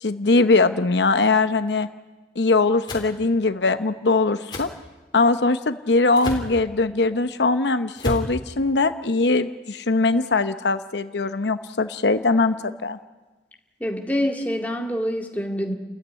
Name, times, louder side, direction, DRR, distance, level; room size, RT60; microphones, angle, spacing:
voice 1, 0.0-1.9 2.4-4.7 5.1-12.5 12.8-13.0, left 3 dB, 80° left, 10 dB, 0.9 m, -21 dB
sound 1, 2.9-3.1 4.5-4.7 6.2-6.5 8.0-8.3, left 1 dB, 25° left, 3.6 m, -29 dB
voice 2, 13.8-15.7, equal, 10° left, 1 dB, 2.1 m, -26 dB
29.5 x 15.0 x 9.7 m, 1.2 s
head